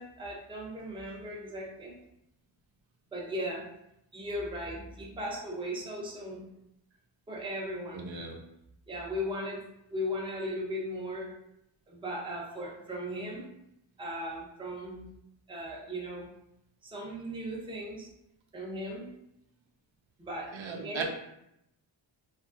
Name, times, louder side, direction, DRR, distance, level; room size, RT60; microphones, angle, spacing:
voice 1, 0.0-1.9 3.1-3.6 4.1-6.5 7.3-8.1 8.9-9.6 9.9-11.3 11.9-13.5 14.0-15.1 15.5-16.3 16.8-18.1 18.5-19.1 20.2-20.5 20.8-21.0, equal, 10° right, -2 dB, 0.5 m, -37 dB
voice 2, 7.9-8.4 20.5-21.0, right 5 dB, 75° right, 2 dB, 0.6 m, -37 dB
2.8 x 2.4 x 2.5 m, 0.81 s
wide cardioid pair, 110°, 47 cm